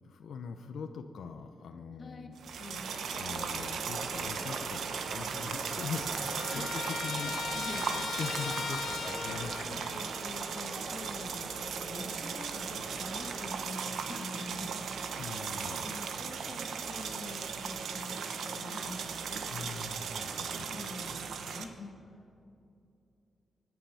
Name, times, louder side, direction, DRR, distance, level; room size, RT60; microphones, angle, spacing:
voice 1, 0.0-2.7 3.1-10.0 15.2-16.0 19.5-20.7, left 5 dB, 85° left, 6 dB, 0.8 m, -42 dB
sound 1, 2.4-21.6, right 6 dB, 80° right, 1.1 m, -37 dB
voice 2, 2.6-2.9 5.4-5.6 6.5-8.0 9.0-14.8 15.8-19.7 20.2-22.0, left 2 dB, 35° left, 3 dB, 1.6 m, -46 dB
sound 2, 2.9-13.6, right 1 dB, 30° right, 2.1 m, -46 dB
Trumpet, 5.0-5.1 5.3-9.7, left 6 dB, 65° left, 1.3 m, -39 dB
24.5 x 9.5 x 5.8 m, 2.7 s
wide cardioid pair, 170°, 0 cm